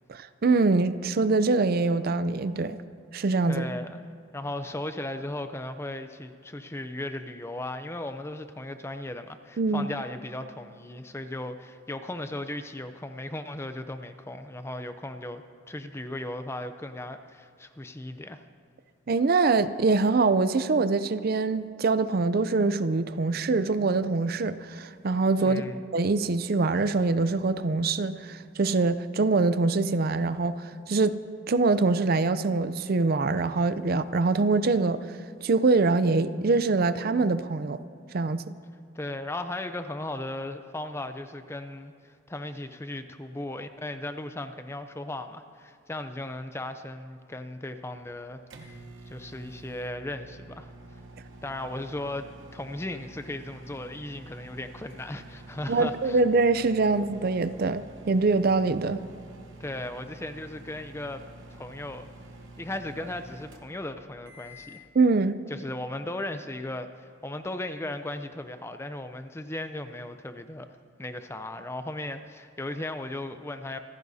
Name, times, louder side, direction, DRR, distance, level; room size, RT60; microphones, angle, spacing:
voice 1, 0.1-2.8 3.1-3.6 9.6-9.9 19.1-25.6 25.9-31.2 31.5-35.0 35.4-37.8 38.1-38.5 55.7-59.0 64.9-65.4, right 3 dB, 45° right, 13 dB, 0.5 m, -24 dB
voice 2, 3.5-4.0 4.3-18.4 25.4-25.8 38.9-48.8 49.1-51.0 51.4-56.2 59.6-61.2 61.5-62.1 62.6-64.8 65.5-70.7 71.0-73.8, left 1 dB, 10° left, 8 dB, 0.5 m, -36 dB
sound 1, 47.9-64.9, right 2 dB, 70° right, 1.1 m, -48 dB
26.0 x 15.0 x 2.8 m, 2.4 s
head